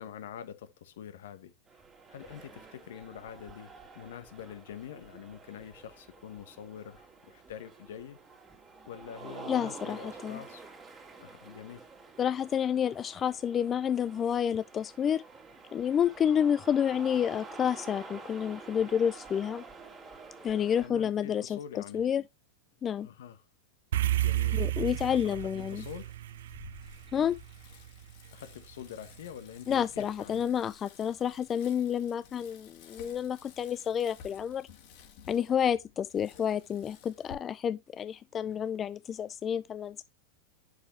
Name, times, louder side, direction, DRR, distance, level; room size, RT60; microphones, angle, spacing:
voice 1, 0.0-1.5 2.1-8.2 8.9-10.7 11.2-11.9 20.8-22.0 23.0-23.4 24.2-24.6 24.9-25.4 25.7-26.1 28.3-30.4, left 9 dB, 75° left, 1.2 m, -45 dB
sound 1, 1.7-20.9, right 4 dB, 20° right, 2.3 m, -49 dB
voice 2, 9.5-10.4 12.2-15.2 15.7-19.6 20.4-22.2 22.8-23.1 24.5-25.8 27.1-27.4 29.7-34.7 35.3-40.0, left 8 dB, 25° left, 0.3 m, -29 dB
sound 2, 23.9-28.4, right 14 dB, 75° right, 0.5 m, -32 dB
Bicycle, 25.0-37.3, left 7 dB, 60° left, 2.6 m, -54 dB
7.8 x 6.4 x 3.2 m
hypercardioid pair, 120°, 0 cm